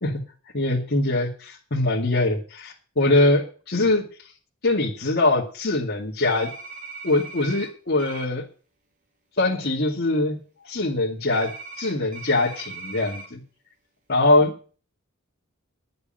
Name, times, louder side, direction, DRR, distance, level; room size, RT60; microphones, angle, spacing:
voice 1, 0.5-4.0 4.6-6.5 7.0-8.4 9.4-13.4 14.1-14.8, left 2 dB, 50° left, -4 dB, 2.2 m, -23 dB
sound 1, 6.2-7.7 8.0-8.2 11.3-13.3, right 4 dB, 40° right, 3.3 m, -39 dB
10.5 x 6.7 x 9.0 m, 0.39 s
head